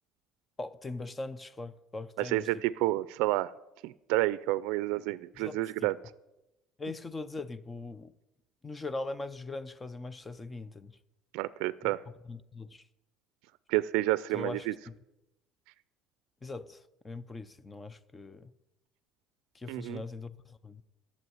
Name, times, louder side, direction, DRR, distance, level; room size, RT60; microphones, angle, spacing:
voice 1, 0.6-2.5 5.4-5.9 6.8-8.1 8.6-11.0 11.8-11.9 12.2-12.8 14.3-14.9 16.4-18.5 19.5-20.8, left 2 dB, 15° left, 0.6 m, -41 dB
voice 2, 2.2-3.5 3.8-6.0 11.3-12.0 13.7-14.7 19.7-20.0, right 17 dB, 80° right, 0.4 m, -30 dB
12.0 x 7.3 x 9.4 m
cardioid pair, 125°, 0 cm